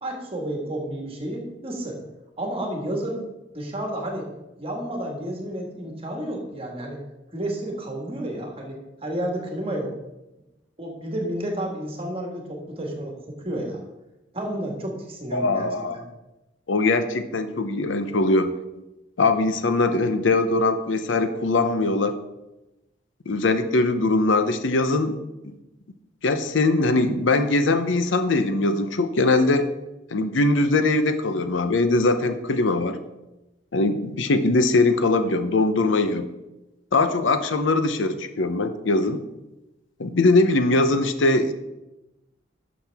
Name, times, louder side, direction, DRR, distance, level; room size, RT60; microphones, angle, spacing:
voice 1, 0.0-2.0 2.4-3.2 3.5-4.3 4.6-7.0 7.3-9.9 10.8-13.8 14.3-15.7 15.9-16.0, right 1 dB, 30° right, 1 dB, 1.7 m, -31 dB
voice 2, 15.3-16.0 16.7-18.5 19.2-22.1 23.3-25.2 26.2-29.7 30.1-33.0 33.7-36.3 36.9-39.2 40.0-41.5, left 2 dB, 80° left, 10 dB, 0.7 m, -21 dB
11.5 x 6.3 x 3.5 m, 0.99 s
head